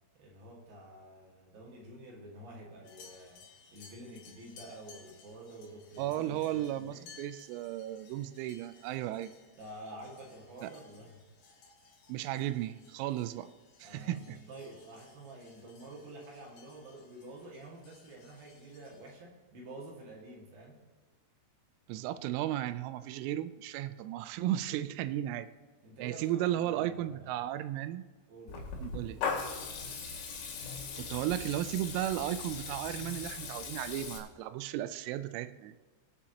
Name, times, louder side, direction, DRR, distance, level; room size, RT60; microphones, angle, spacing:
voice 1, 0.1-3.4 3.7-7.1 9.6-11.2 13.8-20.8 25.8-27.4 28.3-28.7, right 1 dB, 55° right, -2 dB, 3.1 m, -49 dB
sound 1, 2.8-19.1, left 5 dB, 60° left, 3.7 m, -59 dB
voice 2, 6.0-9.3 10.6-10.7 12.1-13.5 13.8-14.4 21.9-25.5 26.0-28.0 28.8-29.2 31.0-35.8, right 13 dB, 85° right, 13 dB, 3.2 m, -35 dB
Water tap faucet / Liquid, 28.5-34.2, left 5 dB, 80° left, 4.6 m, -39 dB
24.5 x 8.7 x 2.9 m, 1.4 s
omnidirectional pair, 5.9 m